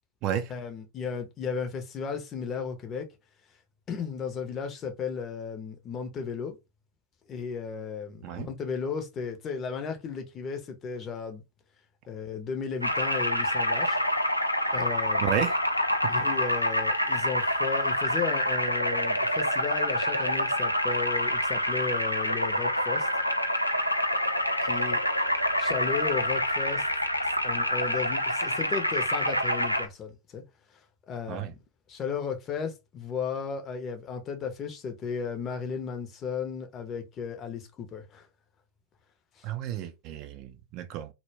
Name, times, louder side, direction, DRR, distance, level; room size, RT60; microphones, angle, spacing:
voice 1, 0.5-3.1 3.9-6.6 7.3-11.4 12.1-14.0 14.7-15.4 16.1-23.1 24.6-25.0 25.6-26.8 27.4-30.4 31.1-31.5 31.9-38.3 39.4-39.5, left 6 dB, 30° left, 0.6 m, -34 dB
sound 1, 12.8-29.9, equal, 90° left, 0.3 m, -27 dB
voice 2, 15.2-15.6 31.3-31.5 39.4-41.1, right 10 dB, 40° right, 0.4 m, -31 dB
2.1 x 2.1 x 3.2 m
figure-of-eight pair, 90°, 0 cm